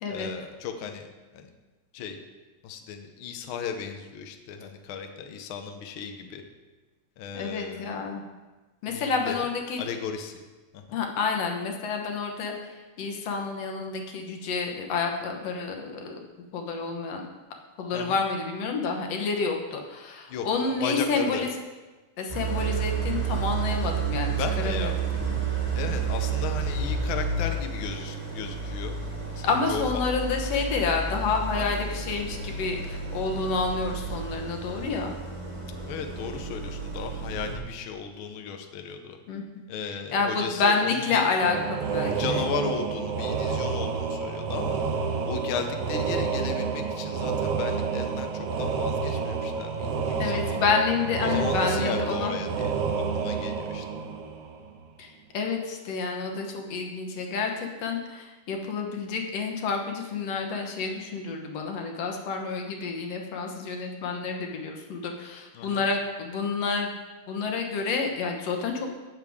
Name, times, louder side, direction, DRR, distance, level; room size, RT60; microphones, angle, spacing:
voice 1, 0.1-1.5 1.9-2.2 2.6-6.4 7.2-7.9 8.9-9.4 9.8-10.4 10.7-11.0 17.9-18.2 20.3-21.5 24.4-24.9 25.7-29.0 29.3-30.0 31.6-31.7 35.8-39.2 39.7-41.3 42.1-44.8 45.2-50.6 51.2-53.8 65.5-65.9, left 6 dB, 80° left, 5 dB, 1.1 m, -35 dB
voice 2, 7.3-8.2 8.8-9.8 10.9-12.5 13.0-16.2 16.5-17.2 17.8-21.5 22.2-24.3 24.6-24.9 25.2-25.4 29.4-35.1 39.3-39.4 39.8-42.4 50.2-52.3 55.0-66.9 67.3-68.9, left 4 dB, 65° left, 2 dB, 2.1 m, -29 dB
Idling, 22.3-37.6, right 5 dB, 20° right, 1.3 m, -31 dB
sound 1, 41.4-54.9, right 5 dB, 70° right, 1.7 m, -29 dB
15.5 x 6.8 x 3.6 m, 1.2 s
omnidirectional pair, 3.4 m